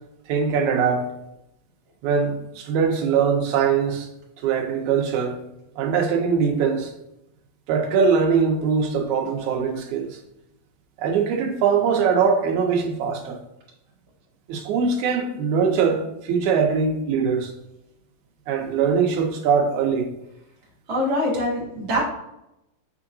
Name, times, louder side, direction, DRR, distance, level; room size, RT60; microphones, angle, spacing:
voice 1, 0.3-1.1 2.0-4.1 4.4-5.4 5.8-6.9 7.7-10.2 11.0-13.4 14.5-17.5 18.5-20.1, right 6 dB, 85° right, 2.1 m, -22 dB
voice 2, 20.9-22.0, left 1 dB, 50° right, 0.8 m, -24 dB
5.5 x 3.7 x 2.6 m
omnidirectional pair, 3.3 m